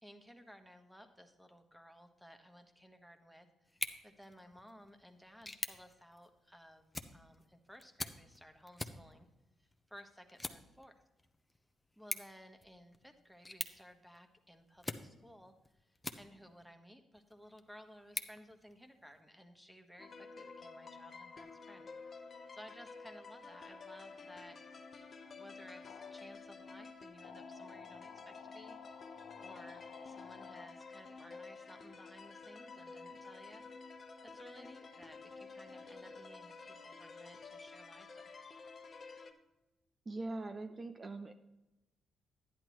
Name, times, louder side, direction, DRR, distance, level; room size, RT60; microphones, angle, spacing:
voice 1, 0.0-6.8 7.1-9.3 9.6-11.0 12.0-21.9 22.5-24.6 25.4-33.6 34.2-38.3, equal, ahead, 6 dB, 1.4 m, -57 dB
sound 1, 3.6-16.6 17.1-19.2, left 2 dB, 15° left, 0.8 m, -47 dB
sound 2, 20.0-39.3, left 4 dB, 45° left, 1.0 m, -51 dB
sound 3, 25.6-26.3 27.2-30.7, left 8 dB, 75° left, 0.6 m, -54 dB
voice 2, 40.1-41.3, right 2 dB, 35° right, 8 dB, 0.6 m, -42 dB
10.5 x 10.0 x 3.1 m, 0.98 s
supercardioid pair, 50°, 0 cm